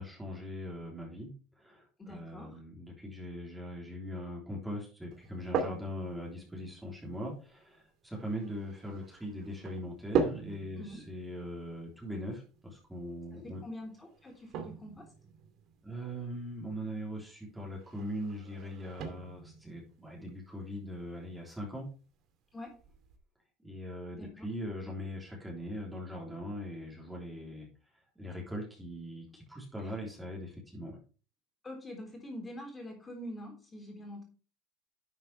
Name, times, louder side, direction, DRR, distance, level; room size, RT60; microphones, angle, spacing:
voice 1, 0.0-13.6 15.8-21.9 23.6-27.7 28.2-31.0, equal, 5° right, -2 dB, 3.5 m, -41 dB
voice 2, 2.0-2.6 10.8-11.0 13.3-15.1 22.5-22.8 24.1-24.5 29.8-30.0 31.6-34.2, left 1 dB, 15° left, 3 dB, 3.9 m, -45 dB
sound 1, 5.1-23.2, right 6 dB, 50° right, 2.5 m, -41 dB
11.5 x 7.6 x 3.4 m, 0.35 s
cardioid pair, 145°, 0 cm